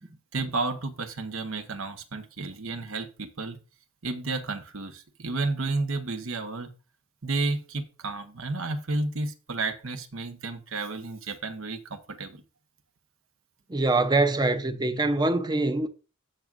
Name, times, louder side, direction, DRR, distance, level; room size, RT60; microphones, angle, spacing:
voice 1, 0.3-3.6 4.0-6.7 7.2-12.4, right 3 dB, 70° right, 1.1 m, -32 dB
voice 2, 13.7-15.9, right 2 dB, 20° right, 0.7 m, -24 dB
16.5 x 6.0 x 2.5 m
head